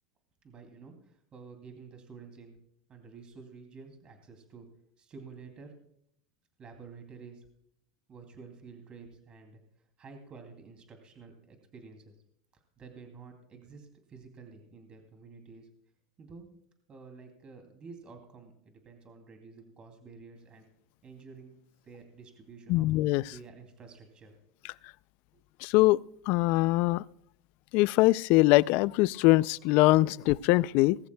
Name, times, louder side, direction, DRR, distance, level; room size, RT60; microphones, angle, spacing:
voice 1, 0.4-2.6 2.9-4.7 5.0-5.7 6.6-7.5 8.1-9.6 10.0-12.1 12.5-15.7 16.2-16.5 16.9-20.7 21.0-21.6 21.8-22.9 23.2-24.3 25.3-25.4, right 5 dB, 30° right, 5 dB, 2.7 m, -50 dB
voice 2, 22.7-23.2 25.6-26.0 26.3-27.0 27.7-31.0, left 20 dB, 55° left, 21 dB, 0.4 m, -23 dB
19.5 x 14.5 x 2.3 m, 0.68 s
hypercardioid pair, 110°, 3 cm